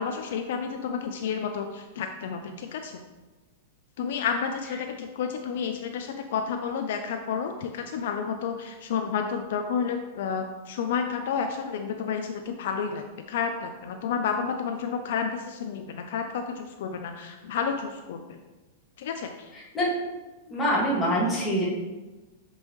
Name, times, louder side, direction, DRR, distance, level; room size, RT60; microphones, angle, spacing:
voice 1, 0.0-3.0 4.0-18.4 19.0-19.5, left 6 dB, 65° left, 5 dB, 0.5 m, -31 dB
voice 2, 20.5-21.6, equal, 15° left, -6 dB, 1.9 m, -24 dB
6.4 x 5.3 x 3.1 m, 1.2 s
hypercardioid pair, 145°, 0 cm